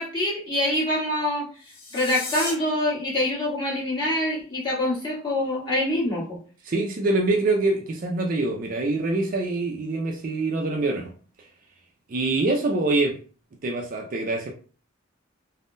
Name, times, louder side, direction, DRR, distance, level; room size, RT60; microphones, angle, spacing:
voice 1, 0.0-1.5 1.9-6.4, left 1 dB, 20° left, -7 dB, 1.3 m, -25 dB
sound 1, 1.6-2.5, left 3 dB, 40° left, 0.7 m, -34 dB
voice 2, 6.6-11.1 12.1-13.2 13.6-14.5, right 2 dB, 40° right, 1 dB, 0.4 m, -25 dB
3.5 x 2.0 x 2.5 m, 0.38 s
head